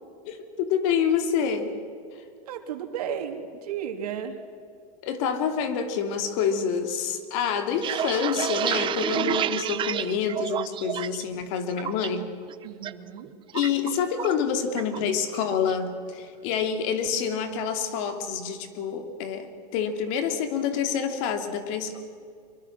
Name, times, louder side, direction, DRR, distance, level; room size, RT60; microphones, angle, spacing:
voice 1, 0.3-1.7 5.0-12.3 13.5-22.0, left 7 dB, 55° left, 7 dB, 3.0 m, -27 dB
voice 2, 2.5-4.4 12.6-13.3, right 8 dB, 80° right, 5 dB, 3.2 m, -34 dB
sound 1, 7.6-11.2 11.6-12.1 12.5-12.9 13.2-14.4 14.8-15.0 15.3-15.8, right 10 dB, 25° right, 0.8 m, -29 dB
24.5 x 23.0 x 6.2 m, 2.2 s
supercardioid pair, 135°, 19 cm